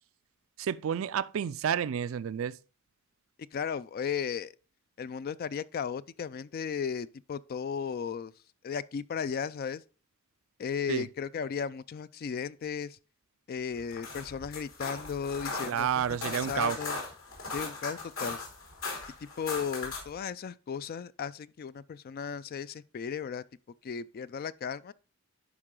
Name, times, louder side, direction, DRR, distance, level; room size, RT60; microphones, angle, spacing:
voice 1, 0.6-2.6 10.9-11.1 15.7-16.8, right 8 dB, 70° right, 0.4 m, -30 dB
voice 2, 3.5-4.5 5.0-8.3 8.6-9.8 10.6-13.0 13.5-17.0 17.5-18.4 19.2-23.4 23.8-24.9, left 6 dB, 45° left, 0.3 m, -35 dB
sound 1, 13.8-20.2, left 3 dB, 70° left, 3.3 m, -38 dB
11.0 x 4.8 x 3.7 m
head